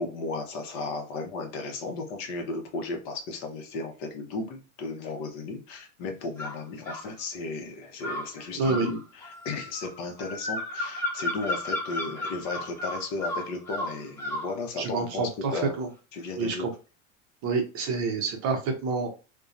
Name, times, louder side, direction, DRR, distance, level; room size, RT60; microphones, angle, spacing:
voice 1, 0.0-15.8 16.1-16.7, left 3 dB, 45° left, 4 dB, 0.8 m, -35 dB
sound 1, 6.4-7.1 8.0-14.5, left 1 dB, 5° left, 0.3 m, -34 dB
voice 2, 8.6-8.9 14.8-15.9 16.4-16.7 17.4-19.1, right 4 dB, 35° right, 4 dB, 0.6 m, -28 dB
2.6 x 2.2 x 2.4 m, 0.32 s
supercardioid pair, 130°, 41 cm